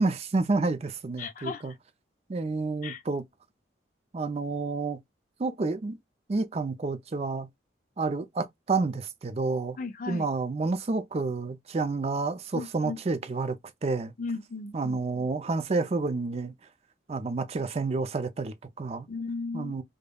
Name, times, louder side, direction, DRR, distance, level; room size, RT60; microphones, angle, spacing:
voice 1, 0.0-1.7 2.3-3.2 4.1-5.0 5.4-6.0 6.3-7.5 8.0-9.8 10.1-13.6 13.8-14.1 14.7-16.5 17.1-19.1 19.5-19.8, right 3 dB, 35° right, 0.4 m, -29 dB
voice 2, 1.2-1.7 2.8-3.0 9.8-10.3 12.5-13.0 14.2-15.3 19.1-19.7, left 4 dB, 45° left, 0.5 m, -36 dB
5.1 x 2.1 x 2.2 m
head